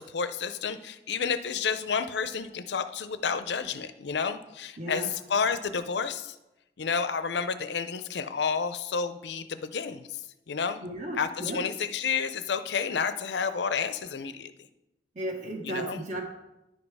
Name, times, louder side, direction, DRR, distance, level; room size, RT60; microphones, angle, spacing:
voice 1, 0.0-6.4 6.8-10.8 11.1-14.5 15.6-16.0, left 6 dB, 75° left, 11 dB, 0.5 m, -30 dB
voice 2, 10.8-11.6 15.2-16.2, right 1 dB, 45° right, 1 dB, 1.2 m, -34 dB
10.5 x 5.2 x 4.8 m, 0.94 s
head